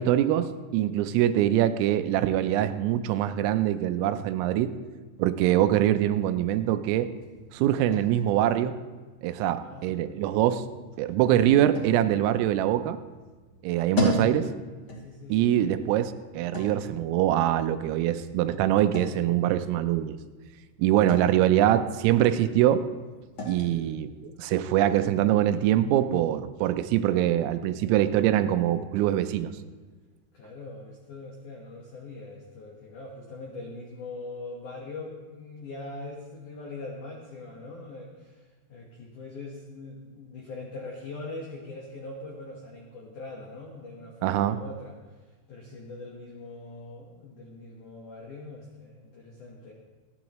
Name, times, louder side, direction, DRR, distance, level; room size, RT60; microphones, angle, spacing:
voice 1, 0.0-4.7 5.2-7.1 7.5-8.8 9.2-10.6 11.0-13.0 13.6-14.4 15.3-20.2 20.8-22.8 23.5-24.1 24.4-29.5 44.2-44.6, right 12 dB, 85° right, 10 dB, 3.3 m, -24 dB
sound 1, 6.4-26.0, left 2 dB, 35° left, 2.2 m, -39 dB
voice 2, 14.0-14.4 15.0-15.7 23.7-24.0 26.9-27.3 30.3-45.0 45.5-49.7, left 2 dB, 80° left, -1 dB, 1.8 m, -42 dB
27.0 x 9.5 x 3.1 m, 1.3 s
omnidirectional pair, 5.8 m